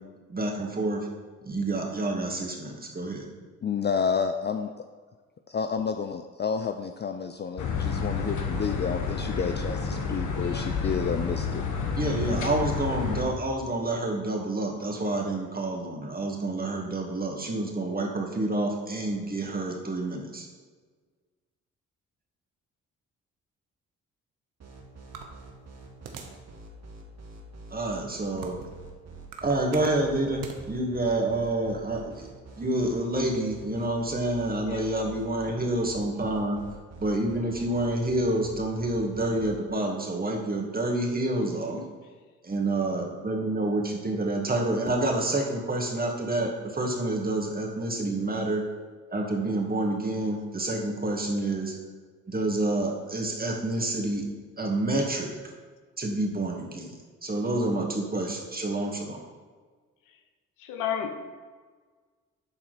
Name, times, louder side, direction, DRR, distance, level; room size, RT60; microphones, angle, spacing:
voice 1, 0.3-1.1 1.4-3.3 12.0-20.5 27.7-28.6 29.4-32.3 32.6-36.6 37.0-41.8 42.4-48.6 49.1-51.7 52.3-54.2 54.6-55.4 56.0-56.9 57.2-59.2, right 2 dB, 30° right, 0 dB, 2.2 m, -28 dB
voice 2, 3.6-4.7 5.5-11.6, left 6 dB, 35° left, 7 dB, 0.5 m, -30 dB
sound 1, 7.6-13.2, left 5 dB, 65° left, 1.2 m, -30 dB
sound 2, 24.6-39.5, right 3 dB, 50° right, 1.7 m, -46 dB
sound 3, 25.1-26.5 27.0-27.1 27.8-28.8 29.2-30.6, right 6 dB, 80° right, 0.9 m, -42 dB
voice 3, 34.6-35.1 60.6-61.1, left 8 dB, 85° left, 6 dB, 0.9 m, -32 dB
11.5 x 4.3 x 4.2 m, 1.5 s
hypercardioid pair, 50°, 32 cm